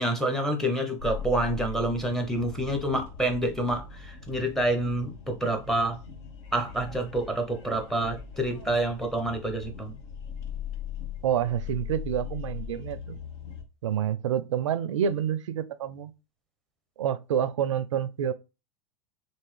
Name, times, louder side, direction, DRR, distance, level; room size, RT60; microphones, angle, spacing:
voice 1, 0.0-6.0 6.5-9.9, right 1 dB, 5° left, 0.8 m, -28 dB
sound 1, 1.0-13.6, left 7 dB, 60° left, 0.8 m, -40 dB
voice 2, 11.2-13.2 13.8-16.1 17.0-18.3, right 9 dB, 80° right, 0.4 m, -28 dB
3.5 x 2.7 x 3.2 m
hypercardioid pair, 105°, 16 cm